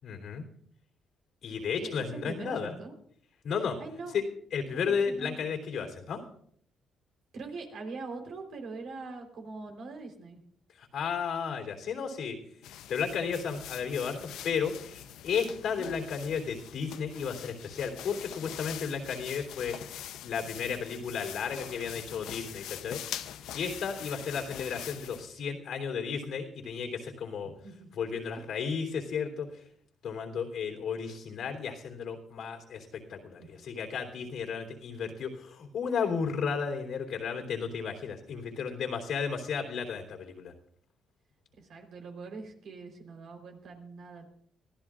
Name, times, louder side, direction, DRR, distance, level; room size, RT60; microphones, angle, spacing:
voice 1, 0.0-0.4 1.4-2.7 3.4-3.8 4.1-4.2 4.5-6.2 10.7-12.4 12.9-27.5 27.9-29.6 30.0-40.5, left 6 dB, 70° left, 3 dB, 3.3 m, -33 dB
voice 2, 1.8-2.9 3.8-4.2 4.7-5.5 7.3-10.4 15.6-15.9 27.4-27.9 33.4-33.5 41.6-44.3, right 3 dB, 70° right, 2 dB, 3.9 m, -43 dB
sound 1, 12.6-25.3, left 11 dB, 90° left, 0.7 m, -43 dB
24.5 x 15.0 x 2.5 m, 0.64 s
cardioid pair, 90°, 0 cm